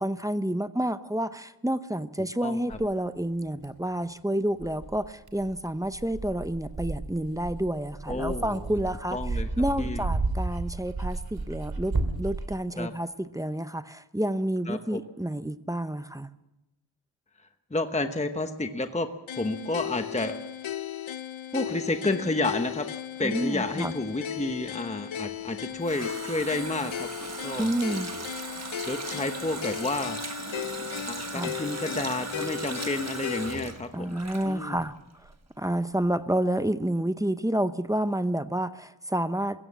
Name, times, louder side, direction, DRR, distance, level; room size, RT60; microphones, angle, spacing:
voice 1, 0.0-9.2 9.6-11.9 12.2-16.3 23.2-23.9 27.6-28.1 31.3-31.5 33.9-35.3 35.6-39.6, right 1 dB, 5° right, 12 dB, 0.7 m, -29 dB
voice 2, 2.4-2.8 8.1-8.6 9.1-9.5 9.8-10.0 12.8-12.9 14.7-15.0 17.7-19.1 19.4-20.4 21.5-22.9 23.2-27.1 27.4-27.7 28.9-30.2 31.1-34.2 34.4-34.8, left 2 dB, 15° left, 7 dB, 1.0 m, -30 dB
Dog, 2.7-2.8 3.6-3.7 4.6-12.5, right 3 dB, 55° right, 2.8 m, -32 dB
sound 1, 19.3-33.7, left 10 dB, 80° left, 0.7 m, -36 dB
Water tap faucet, 25.4-35.0 35.2-35.4, right 4 dB, 35° right, 1.3 m, -38 dB
21.5 x 16.0 x 7.4 m, 0.99 s
wide cardioid pair, 100°, 46 cm